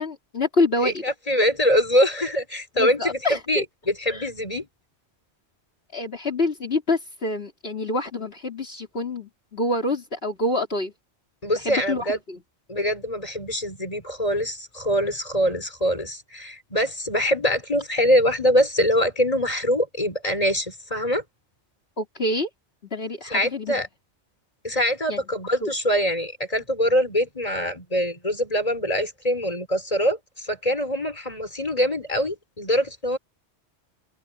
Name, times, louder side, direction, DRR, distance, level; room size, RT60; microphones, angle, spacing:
voice 1, 0.0-1.0 2.8-3.6 4.1-4.3 5.9-10.9 11.6-12.4 22.0-22.5 22.9-23.8 25.1-25.2 25.6-25.7, left 2 dB, 65° left, 3.4 m, -26 dB
voice 2, 0.8-4.7 11.4-12.2 12.7-21.2 23.3-23.9 24.6-33.2, equal, 35° left, 5.2 m, -24 dB
open air
omnidirectional pair, 1.1 m